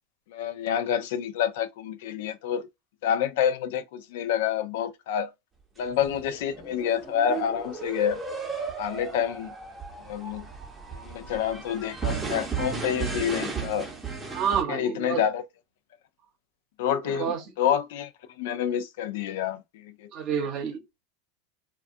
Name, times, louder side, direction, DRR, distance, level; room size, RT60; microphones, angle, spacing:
voice 1, 0.3-2.7 3.0-5.3 5.8-8.2 8.6-9.5 10.1-10.5 11.0-13.9 14.7-15.4 16.8-18.1 18.4-20.1, left 9 dB, 75° left, 0.4 m, -28 dB
sound 1, 5.9-14.6, right 5 dB, 15° right, 0.8 m, -35 dB
voice 2, 14.3-15.2 17.1-17.5 20.1-20.8, right 7 dB, 50° right, 0.8 m, -29 dB
2.3 x 2.2 x 2.5 m
supercardioid pair, 115°, 0 cm